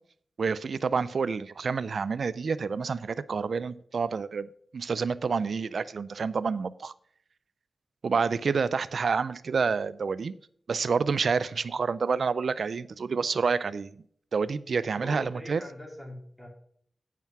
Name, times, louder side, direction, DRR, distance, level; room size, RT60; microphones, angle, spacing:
voice 1, 0.4-6.9 8.0-10.3 10.7-13.9 14.3-15.6, right 5 dB, 70° right, 0.3 m, -28 dB
voice 2, 15.0-16.5, left 1 dB, 10° left, 3.6 m, -42 dB
9.2 x 5.7 x 5.9 m
cardioid pair, 60°, 0 cm